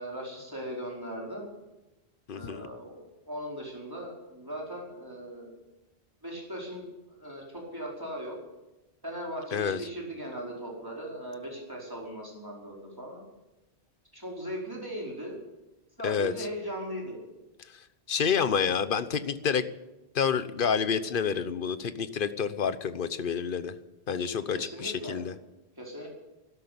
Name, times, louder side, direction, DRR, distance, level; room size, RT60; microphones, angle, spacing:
voice 1, 0.0-1.5 2.3-5.5 6.2-6.9 7.2-8.4 9.0-13.2 14.1-15.4 16.0-17.2 24.5-25.2 25.8-26.1, equal, 20° right, -3 dB, 4.9 m, -38 dB
voice 2, 2.3-2.7 9.5-9.8 16.0-16.5 17.7-19.6 20.1-23.7 24.1-25.3, left 6 dB, 55° left, 13 dB, 1.0 m, -29 dB
12.5 x 12.0 x 9.4 m, 1.0 s
omnidirectional pair, 1.1 m